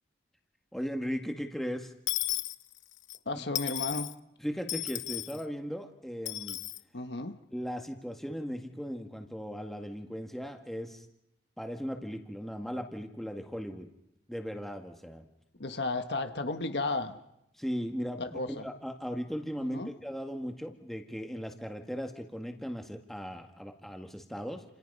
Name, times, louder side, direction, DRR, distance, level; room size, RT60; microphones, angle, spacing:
voice 1, 0.7-1.9 3.4-3.5 4.4-6.6 7.5-11.0 11.6-13.9 14.3-15.3 17.6-24.6, equal, ahead, 1.7 m, -37 dB
Dishes pots and pans / Coin (dropping), 2.1-3.2 3.6-4.1 4.7-5.4 6.3-6.8, left 14 dB, 90° left, 0.9 m, -34 dB
voice 2, 3.2-4.1 6.9-7.4 15.6-17.2 18.2-18.6 19.7-19.9, left 2 dB, 65° left, 1.4 m, -33 dB
29.5 x 27.5 x 5.5 m
head